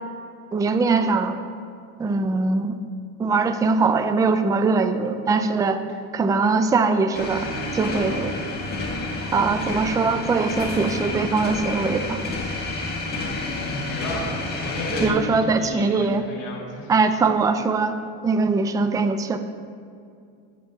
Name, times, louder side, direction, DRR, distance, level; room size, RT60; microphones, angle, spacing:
voice 1, 0.5-1.4 2.0-2.7 3.2-5.8 6.1-7.5 7.7-8.3 9.3-12.2 15.0-16.2 16.9-18.0 18.2-19.4, right 4 dB, 10° right, 9 dB, 0.4 m, -21 dB
sound 1, 7.1-15.1, left 2 dB, 25° left, 2.1 m, -29 dB
voice 2, 13.6-16.9, left 1 dB, 55° left, -4 dB, 2.7 m, -32 dB
8.3 x 6.1 x 7.4 m, 2.4 s
supercardioid pair, 115°, 37 cm